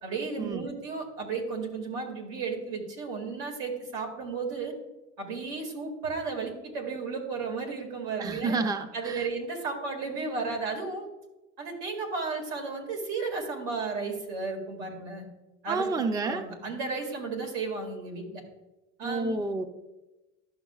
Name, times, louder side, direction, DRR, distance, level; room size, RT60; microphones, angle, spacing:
voice 1, 0.0-4.7 5.2-8.5 8.9-11.1 11.6-15.3 15.6-15.9 16.2-18.4 19.0-19.4, right 4 dB, 85° right, 1 dB, 2.3 m, -34 dB
voice 2, 8.2-9.3 15.7-16.4 19.0-19.6, right 3 dB, 10° right, 8 dB, 0.4 m, -30 dB
12.0 x 6.2 x 2.3 m, 1.0 s
cardioid pair, 125°, 31 cm